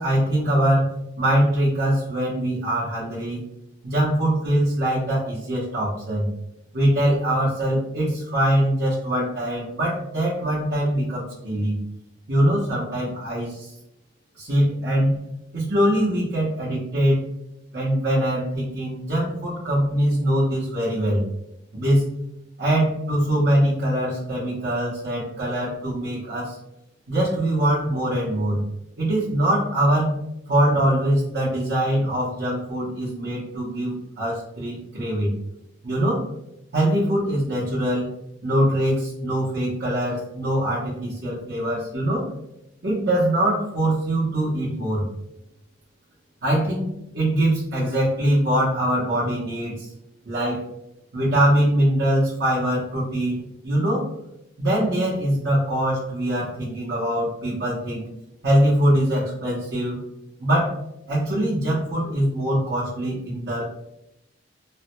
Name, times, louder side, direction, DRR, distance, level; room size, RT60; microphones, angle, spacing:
voice 1, 0.0-3.4 3.8-6.3 6.7-11.8 12.3-13.7 14.3-15.2 15.5-17.3 17.7-21.2 21.7-22.2 22.6-26.6 27.1-28.6 29.0-30.2 30.5-35.3 35.8-36.2 36.7-38.1 38.4-42.3 42.8-45.1 46.4-46.8 47.1-49.9 50.2-50.6 51.1-54.0 54.6-58.0 58.4-60.0 60.4-60.8 61.1-63.8, right 1 dB, 55° right, -8 dB, 0.8 m, -23 dB
3.2 x 2.1 x 3.0 m, 0.85 s
head